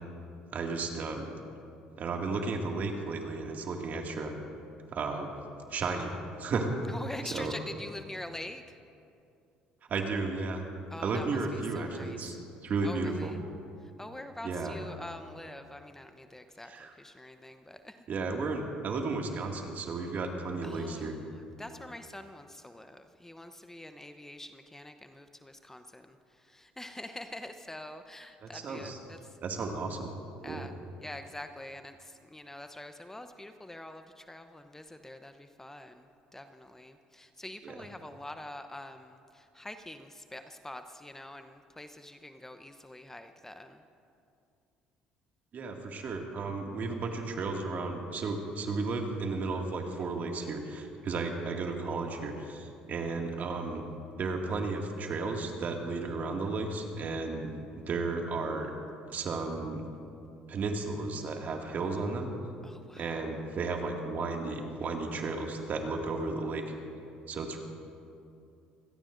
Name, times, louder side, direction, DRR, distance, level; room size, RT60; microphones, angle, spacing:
voice 1, 0.5-1.3 2.0-4.3 4.9-5.3 5.7-6.7 7.3-7.5 9.9-10.7 11.0-13.3 14.4-14.8 16.7-16.9 18.1-21.1 28.4-29.0 29.4-30.1 30.4-30.7 37.6-37.7 45.5-53.9 54.2-58.7 59.1-59.8 60.5-62.3 63.0-66.7 67.3-67.6, right 3 dB, 50° right, 2 dB, 2.2 m, -34 dB
voice 2, 6.9-8.7 10.9-12.4 12.8-13.4 13.8-18.0 20.6-29.4 30.4-30.7 31.0-43.8 62.6-63.2, left 1 dB, 10° left, 8 dB, 0.9 m, -45 dB
25.5 x 17.5 x 2.6 m, 2.6 s
hypercardioid pair, 65°, 4 cm